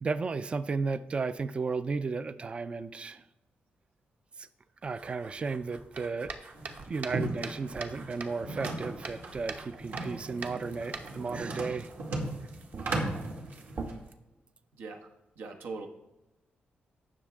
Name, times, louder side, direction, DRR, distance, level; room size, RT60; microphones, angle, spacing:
voice 1, 0.0-3.2 4.4-4.5 4.8-6.3 6.9-11.9, right 4 dB, 30° right, 0.4 m, -34 dB
sound 1, 4.8-14.1, right 4 dB, 50° right, 0.9 m, -44 dB
sound 2, 6.5-13.9, right 2 dB, 70° right, 2.0 m, -37 dB
voice 2, 14.7-15.1 15.4-15.9, right 4 dB, 85° right, 1.3 m, -40 dB
17.5 x 6.3 x 3.5 m
wide cardioid pair, 140°, 4 cm